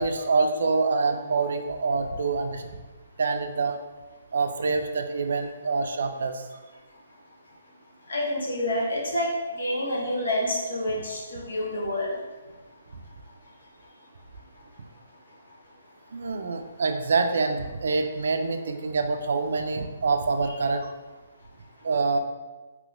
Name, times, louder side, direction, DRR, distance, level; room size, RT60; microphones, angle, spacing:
voice 1, 0.0-2.7 3.2-3.8 4.3-6.5 16.1-20.9 21.8-22.2, right 4 dB, 60° right, 7 dB, 0.3 m, -26 dB
voice 2, 8.1-9.3 9.6-12.1, left 1 dB, 85° left, -3 dB, 1.0 m, -28 dB
3.3 x 2.9 x 2.5 m, 1.2 s
hypercardioid pair, 175°, 0 cm